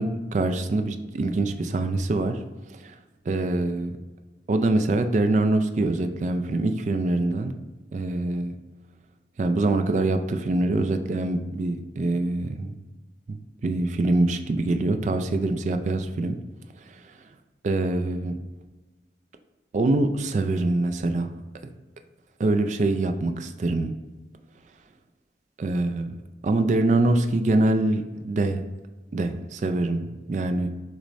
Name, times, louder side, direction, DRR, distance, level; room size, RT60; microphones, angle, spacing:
voice 1, 0.0-2.4 2.7-3.0 3.3-3.9 4.5-7.5 7.9-8.5 9.4-12.7 13.3-16.4 16.8-17.1 17.6-18.4 19.7-21.3 22.4-23.9 25.6-26.1 26.4-28.6 29.1-30.7, right 2 dB, 40° right, 8 dB, 0.3 m, -24 dB
6.2 x 3.1 x 2.6 m, 1.2 s
head